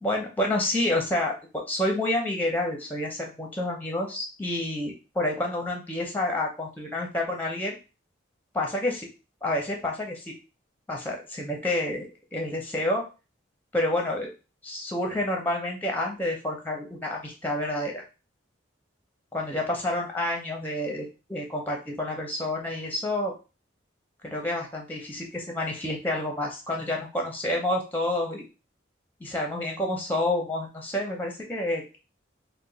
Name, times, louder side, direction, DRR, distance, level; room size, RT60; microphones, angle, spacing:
voice 1, 0.0-7.8 8.5-9.1 9.4-10.3 10.9-13.0 13.7-14.3 14.6-18.0 19.3-23.3 24.2-28.4 29.2-32.0, left 1 dB, 10° left, 1 dB, 0.5 m, -29 dB
2.8 x 2.1 x 3.9 m, 0.31 s
head